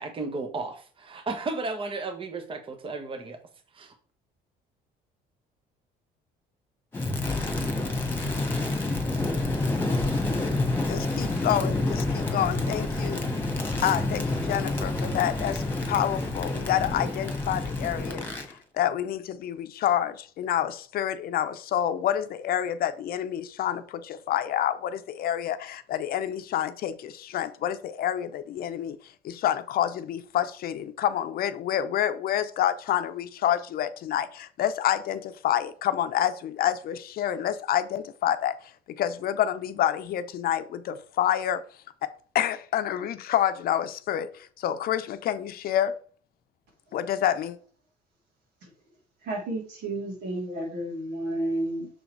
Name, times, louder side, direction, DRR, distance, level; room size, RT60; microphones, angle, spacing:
voice 1, 0.0-3.4 3.7-3.9, right 3 dB, 30° right, 1.0 m, -34 dB
Crackle, 6.9-18.5, left 2 dB, 15° left, 1.6 m, -28 dB
voice 2, 10.8-13.3 13.8-18.3 18.8-29.0 29.2-38.6 38.9-41.6 42.3-46.0 46.9-47.6, left 11 dB, 60° left, 0.6 m, -28 dB
voice 3, 49.2-51.9, right 1 dB, 80° right, 3.0 m, -31 dB
6.3 x 3.9 x 4.5 m
cardioid pair, 110°, 17 cm